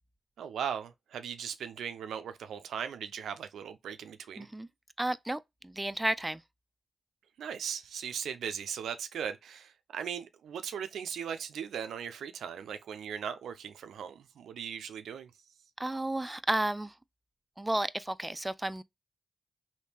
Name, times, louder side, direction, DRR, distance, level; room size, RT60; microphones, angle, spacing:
voice 1, 0.4-4.5 7.4-15.3, right 8 dB, 85° right, 0.4 m, -38 dB
voice 2, 4.4-4.7 5.0-6.4 15.8-16.9 17.6-18.8, right 1 dB, 15° right, 0.4 m, -32 dB
3.4 x 2.8 x 2.8 m
supercardioid pair, 40°, 0 cm